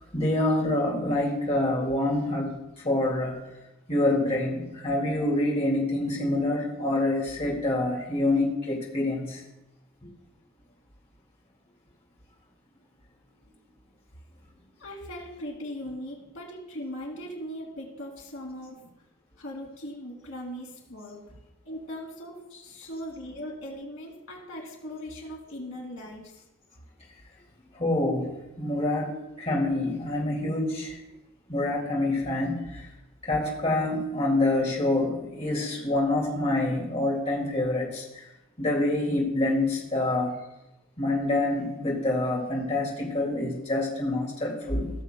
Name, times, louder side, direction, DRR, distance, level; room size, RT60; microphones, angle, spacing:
voice 1, 0.1-3.4 3.9-9.4 27.7-29.1 29.4-31.0 31.5-32.9 33.2-38.3 38.6-40.4 41.0-44.9, left 2 dB, 30° left, -2 dB, 2.2 m, -26 dB
voice 2, 14.8-18.9 19.4-21.2 21.7-26.3, equal, 70° left, 0 dB, 2.3 m, -39 dB
17.5 x 6.9 x 2.2 m, 0.91 s
head